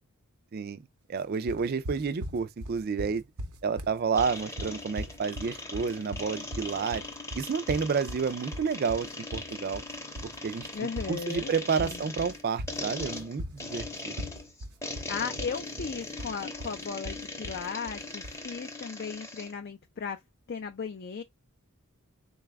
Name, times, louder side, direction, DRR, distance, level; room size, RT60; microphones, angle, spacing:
voice 1, 1.1-3.2 3.6-7.0 7.3-9.1 9.3-9.8 10.4-14.1, right 5 dB, 45° right, 0.4 m, -30 dB
sound 1, 1.5-18.4, equal, 85° right, 0.7 m, -40 dB
sound 2, 4.1-19.5, left 2 dB, 15° left, 0.7 m, -40 dB
voice 2, 10.7-11.5 11.8-12.0 15.1-20.2 20.5-21.2, left 6 dB, 45° left, 0.4 m, -36 dB
4.0 x 2.3 x 3.3 m
head